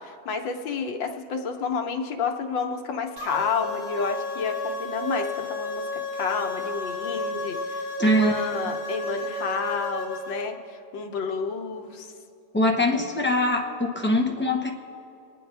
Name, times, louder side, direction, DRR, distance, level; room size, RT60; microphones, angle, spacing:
voice 1, 0.0-5.8 6.1-12.1, left 5 dB, 90° left, 4 dB, 1.7 m, -30 dB
sound 1, 3.2-10.4, left 2 dB, 40° right, 3.3 m, -32 dB
voice 2, 8.0-8.4 12.5-14.7, left 1 dB, 10° left, 0 dB, 0.5 m, -22 dB
27.5 x 9.5 x 3.4 m, 2.7 s
omnidirectional pair, 2.0 m